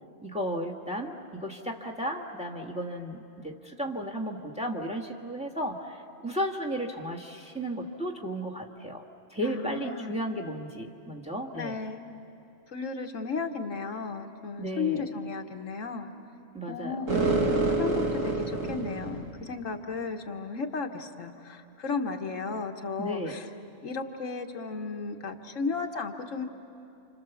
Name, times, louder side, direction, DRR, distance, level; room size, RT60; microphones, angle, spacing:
voice 1, 0.2-9.0 9.3-11.8 14.6-15.1 16.5-17.1 17.4-17.5 23.0-23.4, equal, 5° right, 3 dB, 1.5 m, -34 dB
voice 2, 9.4-10.3 11.5-12.1 12.7-16.1 16.7-17.3 17.7-23.5 23.8-26.5, left 4 dB, 75° left, 4 dB, 1.6 m, -34 dB
sound 1, 17.1-19.4, right 3 dB, 85° right, 2.4 m, -27 dB
30.0 x 26.5 x 7.1 m, 2.7 s
omnidirectional pair, 1.3 m